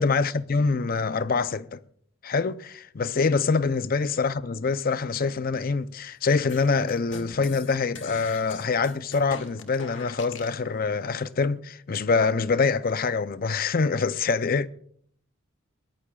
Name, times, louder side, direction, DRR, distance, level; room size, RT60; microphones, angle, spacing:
voice 1, 0.0-1.8 2.2-14.7, left 4 dB, 45° left, 0.5 m, -25 dB
sound 1, 6.5-10.6, left 4 dB, 60° left, 1.9 m, -42 dB
22.0 x 19.5 x 2.4 m
head